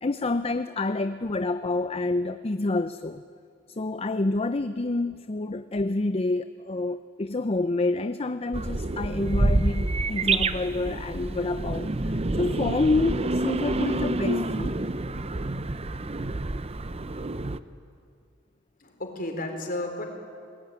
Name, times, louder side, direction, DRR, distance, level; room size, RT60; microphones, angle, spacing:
voice 1, 0.0-3.2 3.7-14.8, left 2 dB, 30° left, 11 dB, 0.6 m, -28 dB
sound 1, 8.5-17.6, right 2 dB, 30° right, 0.8 m, -28 dB
voice 2, 18.8-20.0, left 1 dB, 45° left, 3 dB, 4.3 m, -32 dB
28.5 x 20.5 x 9.4 m, 2.2 s
head